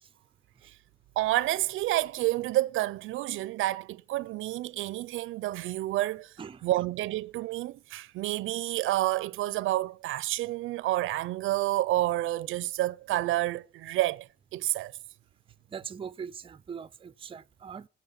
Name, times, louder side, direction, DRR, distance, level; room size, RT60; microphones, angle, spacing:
voice 1, 1.2-6.3 6.6-14.9, right 16 dB, 85° right, 0.5 m, -29 dB
voice 2, 6.4-6.7 15.7-17.9, right 7 dB, 25° right, 0.5 m, -41 dB
8.9 x 7.7 x 8.1 m
cardioid pair, 90°, 20 cm